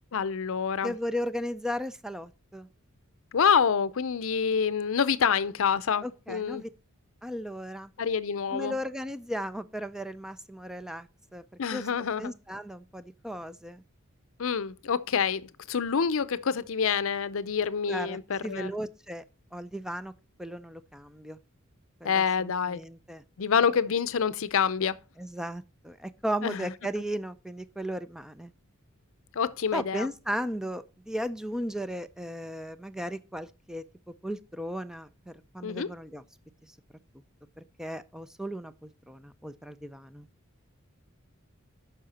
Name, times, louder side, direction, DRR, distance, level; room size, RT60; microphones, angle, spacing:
voice 1, 0.1-0.9 3.3-6.6 8.0-8.8 11.6-12.3 14.4-18.7 22.0-22.8 23.4-25.0 26.4-26.7 29.4-30.1 35.6-35.9, left 6 dB, 70° left, 0.6 m, -27 dB
voice 2, 0.8-2.7 6.0-6.7 7.2-7.9 8.5-11.4 11.7-11.9 12.2-13.8 17.9-19.2 19.5-20.1 20.4-21.4 22.0-23.2 25.2-28.5 29.7-33.8 34.2-36.2 37.6-40.3, equal, 5° right, 0.5 m, -36 dB
8.8 x 5.7 x 4.2 m
head